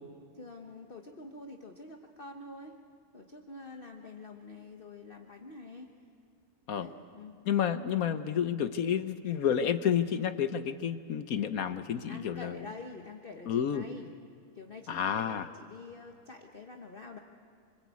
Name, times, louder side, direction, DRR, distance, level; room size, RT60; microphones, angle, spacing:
voice 1, 0.3-2.8 3.1-5.9 6.7-7.4 12.1-14.1 14.5-17.2, left 3 dB, 35° left, 2 dB, 1.4 m, -47 dB
voice 2, 7.5-12.6 13.5-13.9 14.9-15.5, left 8 dB, 65° left, 10 dB, 1.3 m, -30 dB
26.0 x 25.5 x 8.4 m, 2.3 s
omnidirectional pair, 1.7 m